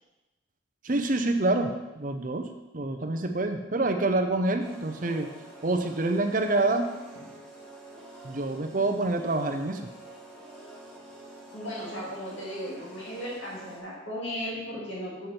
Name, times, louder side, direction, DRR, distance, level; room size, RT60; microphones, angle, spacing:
voice 1, 0.8-2.5 2.7-5.3 5.6-6.9 8.2-9.8, right 2 dB, 40° right, 6 dB, 0.7 m, -27 dB
sound 1, 4.6-13.8, right 1 dB, 5° left, 1.7 m, -47 dB
voice 2, 11.5-15.3, equal, 70° left, -5 dB, 2.6 m, -36 dB
7.9 x 7.1 x 4.4 m, 1.0 s
head